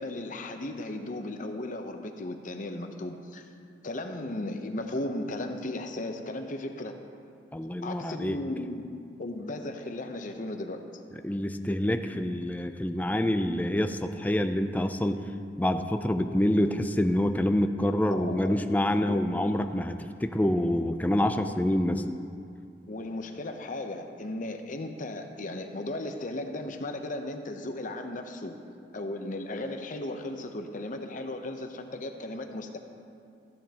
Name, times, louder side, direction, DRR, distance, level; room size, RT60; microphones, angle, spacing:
voice 1, 0.0-3.5 3.8-7.0 7.8-8.8 9.2-10.8 18.1-18.6 18.9-19.2 22.9-28.6 28.9-32.8, left 1 dB, 50° left, 5 dB, 0.8 m, -36 dB
voice 2, 7.5-8.4 11.2-15.2 15.6-22.0, left 1 dB, 10° left, 7 dB, 0.4 m, -27 dB
14.5 x 10.5 x 2.9 m, 2.4 s
head